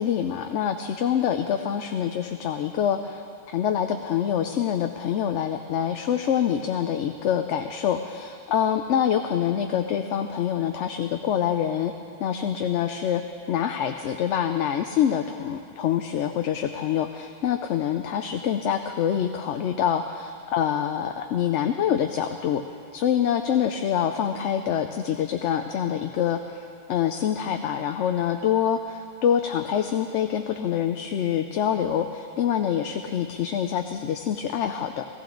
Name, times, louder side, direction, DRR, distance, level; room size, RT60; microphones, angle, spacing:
voice 1, 0.0-11.9 12.2-13.2 13.5-22.6 22.9-35.1, left 9 dB, 85° left, 6 dB, 0.9 m, -25 dB
18.0 x 14.5 x 3.9 m, 2.5 s
omnidirectional pair, 1.2 m